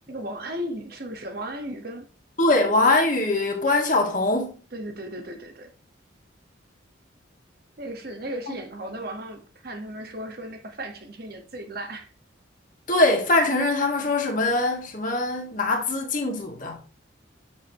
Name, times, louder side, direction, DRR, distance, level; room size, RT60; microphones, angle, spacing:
voice 1, 0.1-2.0 4.7-5.7 7.8-12.1, right 1 dB, 50° right, 1.4 m, -35 dB
voice 2, 2.4-4.5 8.5-8.6 12.9-17.0, left 2 dB, 40° left, 2.0 m, -22 dB
8.5 x 7.3 x 3.0 m
head